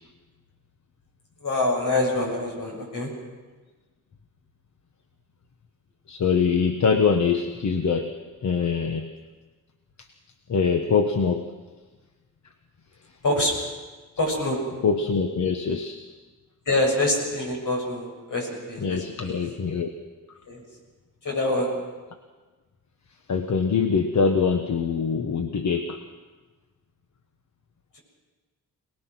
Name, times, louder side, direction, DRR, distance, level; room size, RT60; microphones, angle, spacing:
voice 1, 1.4-3.1 13.2-13.5 14.2-14.6 16.7-19.4 20.5-20.6 21.2-21.8, left 2 dB, 75° left, 0 dB, 7.3 m, -25 dB
voice 2, 6.1-8.1 8.4-9.1 10.5-11.5 14.5-16.0 17.5-17.6 18.8-19.9 23.3-26.0, left 5 dB, 55° left, 5 dB, 1.3 m, -24 dB
27.0 x 19.5 x 6.2 m, 1.3 s
wide cardioid pair, 130°, 33 cm